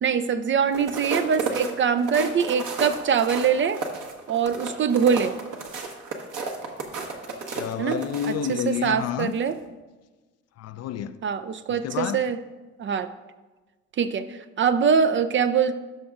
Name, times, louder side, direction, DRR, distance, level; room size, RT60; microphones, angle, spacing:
voice 1, 0.0-3.8 4.3-5.4 7.8-8.0 8.5-9.6 11.2-12.4 12.8-13.1 14.0-15.8, right 6 dB, 30° right, 0.4 m, -23 dB
sound 1, 0.7-8.9 9.3-9.5, right 4 dB, 50° right, 1.3 m, -33 dB
voice 2, 7.5-9.3 10.6-11.2 11.7-12.2, left 9 dB, 40° left, 0.4 m, -29 dB
13.5 x 5.9 x 2.5 m
hypercardioid pair, 55°, 39 cm